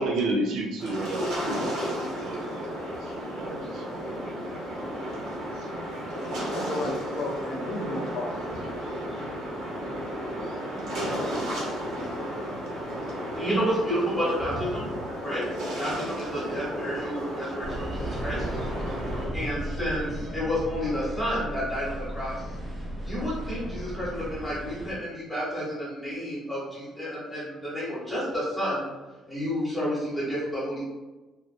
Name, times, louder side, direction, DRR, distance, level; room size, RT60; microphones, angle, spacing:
voice 1, 0.0-3.9, right 2 dB, 65° right, 0 dB, 0.5 m, -32 dB
sound 1, 0.8-19.3, equal, 80° right, 1.0 m, -33 dB
voice 2, 6.3-8.4, left 2 dB, 60° left, 0 dB, 0.5 m, -34 dB
voice 3, 13.3-14.9 15.2-15.4 15.8-18.5 19.3-22.4 23.0-28.9 29.3-30.8, equal, 10° left, -9 dB, 1.0 m, -30 dB
sound 2, 17.6-24.9, right 1 dB, 35° right, 0.8 m, -35 dB
2.8 x 2.4 x 2.4 m, 1.2 s
cardioid pair, 160°, 0 cm